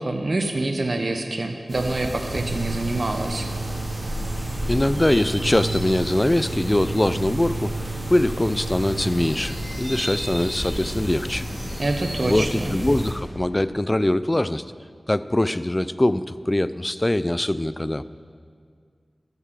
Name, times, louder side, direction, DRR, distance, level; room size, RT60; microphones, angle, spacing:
voice 1, 0.0-3.5 11.8-12.7, right 2 dB, 55° right, 4 dB, 1.0 m, -26 dB
sound 1, 1.7-13.1, equal, 15° right, 3.4 m, -31 dB
sound 2, 2.1-11.6, right 4 dB, 80° right, 0.8 m, -34 dB
voice 2, 4.7-11.5 12.2-14.6 15.1-18.0, left 1 dB, 25° left, 15 dB, 0.4 m, -22 dB
14.0 x 8.2 x 7.6 m, 2.1 s
wide cardioid pair, 60°, 0 cm